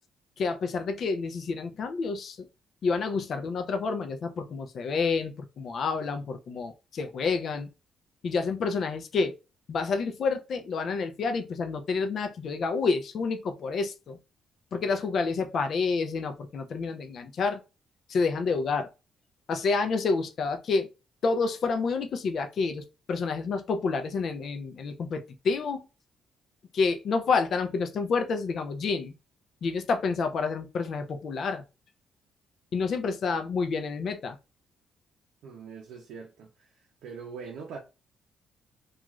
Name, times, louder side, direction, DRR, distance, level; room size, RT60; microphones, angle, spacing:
voice 1, 0.4-2.5 2.8-7.7 8.2-9.3 9.7-14.2 14.7-17.6 18.1-18.9 19.5-20.9 21.2-25.9 26.7-29.1 29.6-31.6 32.7-34.4, left 4 dB, 60° left, 0.4 m, -29 dB
voice 2, 35.4-37.8, right 5 dB, 85° right, 0.5 m, -43 dB
2.4 x 2.3 x 3.0 m
cardioid pair, 90°, 0 cm